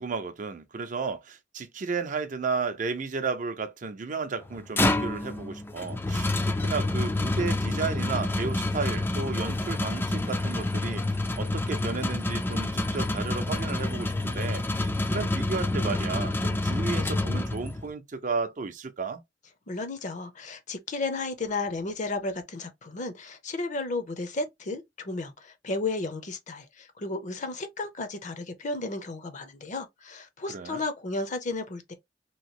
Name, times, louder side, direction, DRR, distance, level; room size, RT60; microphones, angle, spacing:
voice 1, 0.0-19.2 30.5-30.8, right 4 dB, 45° right, 0.5 m, -33 dB
sound 1, 4.4-17.9, left 2 dB, 10° left, 0.4 m, -28 dB
voice 2, 19.7-31.9, left 3 dB, 45° left, 0.7 m, -33 dB
3.0 x 2.8 x 2.9 m
head